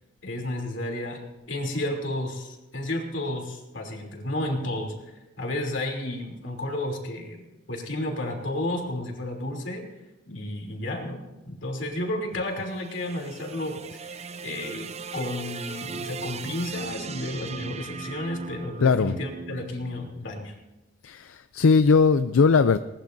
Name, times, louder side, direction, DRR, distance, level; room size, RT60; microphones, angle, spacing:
voice 1, 0.2-1.2 1.5-9.8 10.3-20.5, left 1 dB, 65° left, 1 dB, 3.2 m, -32 dB
sound 1, 12.4-20.7, right 5 dB, 35° right, 0.6 m, -39 dB
voice 2, 18.8-19.2 21.0-22.8, left 5 dB, 85° left, 11 dB, 0.5 m, -19 dB
20.5 x 19.5 x 2.7 m, 1.0 s
head